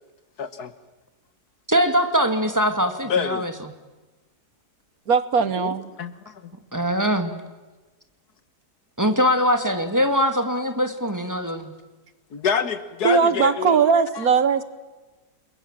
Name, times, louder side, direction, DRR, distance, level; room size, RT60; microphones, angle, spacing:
voice 1, 0.4-0.7 3.1-3.5 5.6-6.5 12.3-13.8 14.2-14.3, left 6 dB, 70° left, 12 dB, 1.9 m, -27 dB
voice 2, 1.7-3.5 6.7-7.3 9.0-11.7, equal, 10° right, 6 dB, 2.3 m, -22 dB
voice 3, 5.1-5.9 13.0-14.6, right 6 dB, 60° right, 13 dB, 1.5 m, -19 dB
30.0 x 22.0 x 7.5 m, 1.2 s
omnidirectional pair, 1.8 m